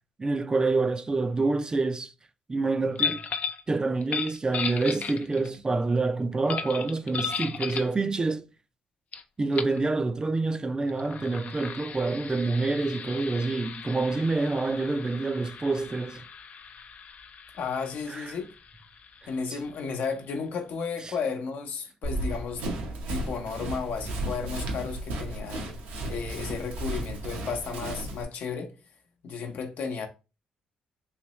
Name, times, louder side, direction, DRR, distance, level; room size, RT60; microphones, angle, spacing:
voice 1, 0.2-2.1 2.5-3.2 3.7-8.5 9.4-16.3 18.1-18.3, right 3 dB, 25° right, 0.4 m, -27 dB
sound 1, 3.0-3.6 4.0-5.6 6.5-8.0 9.1-9.2 9.5-9.8 10.8-20.1, left 6 dB, 55° left, 0.4 m, -36 dB
voice 2, 17.6-18.5 19.3-25.8 26.1-28.7 29.2-30.1, left 5 dB, 70° left, 0.8 m, -33 dB
Run, 22.0-28.2, right 1 dB, 85° right, 0.9 m, -34 dB
3.2 x 3.0 x 3.0 m
supercardioid pair, 65°, 3 cm